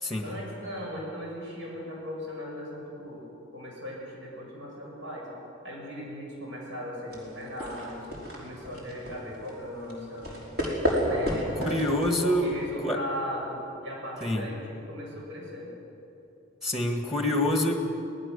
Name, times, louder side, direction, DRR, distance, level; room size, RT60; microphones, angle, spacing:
voice 1, 0.2-3.2 3.5-5.3 5.6-8.1 8.4-10.3 11.0-11.8 12.2-15.7, equal, 75° right, -3 dB, 7.5 m, -37 dB
sound 1, 7.1-12.7, equal, 55° right, 5.1 m, -32 dB
voice 2, 11.6-12.5 12.8-13.0 14.2-14.5 16.6-17.8, left 1 dB, ahead, 4 dB, 1.7 m, -26 dB
25.0 x 19.0 x 6.9 m, 2.8 s
head